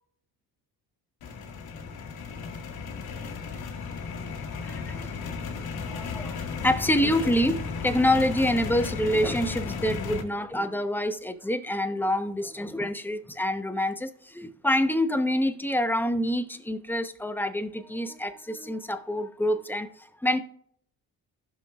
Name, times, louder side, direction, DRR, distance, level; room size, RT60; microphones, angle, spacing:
sound 1, 1.2-10.2, left 5 dB, 70° left, 1.6 m, -34 dB
voice 1, 4.6-5.1 5.9-20.4, left 1 dB, 5° left, 0.9 m, -27 dB
16.0 x 6.1 x 2.4 m
supercardioid pair, 70°, 38 cm